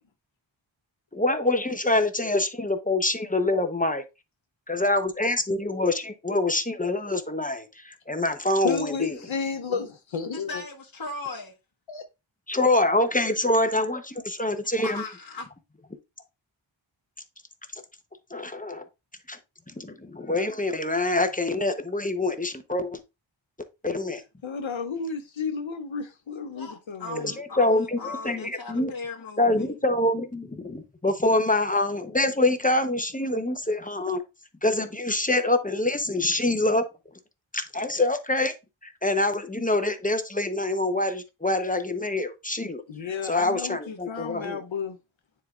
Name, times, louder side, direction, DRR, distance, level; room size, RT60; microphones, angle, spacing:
voice 1, 1.1-4.0 4.7-9.1 12.5-15.0 18.3-18.9 19.3-19.4 19.8-23.0 23.8-24.2 27.4-28.9 29.4-34.2 34.6-36.8 37.5-38.5 38.8-42.8 43.2-44.6, left 2 dB, 15° left, 0.8 m, -25 dB
voice 2, 8.6-10.6 11.9-12.0 24.4-27.3 42.9-45.0, left 5 dB, 75° left, 0.8 m, -32 dB
voice 3, 10.3-11.5 14.8-15.5 26.5-29.7, left 3 dB, 45° left, 1.5 m, -38 dB
9.2 x 4.5 x 2.4 m
wide cardioid pair, 50°, 47 cm